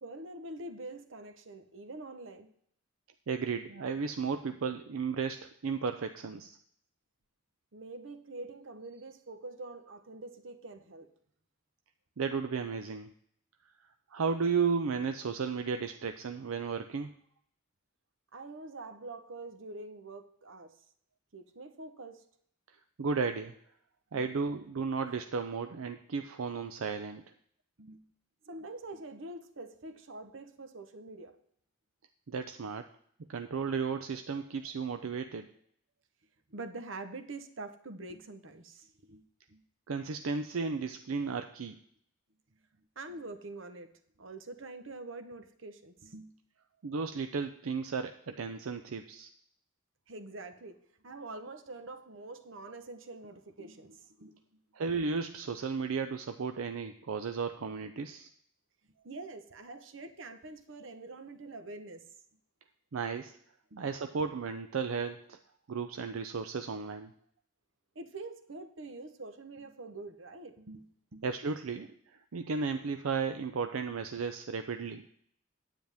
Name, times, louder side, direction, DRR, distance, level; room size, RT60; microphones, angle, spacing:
voice 1, 0.0-2.5 7.7-11.1 18.3-20.8 21.3-22.2 24.1-24.3 27.8-28.1 28.5-31.4 36.5-39.6 43.0-43.9 44.2-46.4 50.1-50.8 51.0-54.4 59.0-62.1 63.7-63.9 67.9-71.3, right 2 dB, 65° right, 9 dB, 0.9 m, -45 dB
voice 2, 3.3-6.6 12.2-13.1 14.1-17.1 23.0-23.5 24.1-27.2 32.3-32.9 33.3-35.5 39.9-41.8 46.8-49.3 54.7-58.3 62.9-63.3 63.8-65.4 65.7-67.1 71.2-75.0, right 5 dB, 85° right, 7 dB, 0.5 m, -34 dB
9.5 x 9.1 x 3.5 m, 0.65 s
head